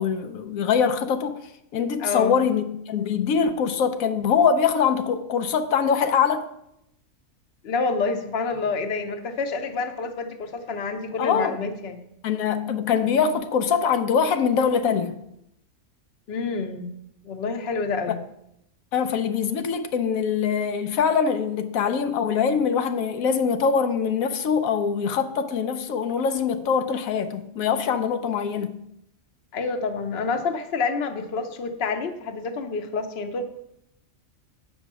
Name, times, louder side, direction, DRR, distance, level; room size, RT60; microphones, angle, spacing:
voice 1, 0.0-1.4 1.7-6.5 11.2-11.6 12.2-15.1 18.9-28.7, left 6 dB, 85° left, 1.1 m, -23 dB
voice 2, 2.0-2.4 7.6-12.0 16.3-16.9 17.2-18.2 29.5-33.4, left 4 dB, 55° left, 1.0 m, -28 dB
8.0 x 5.5 x 6.0 m
omnidirectional pair, 1.4 m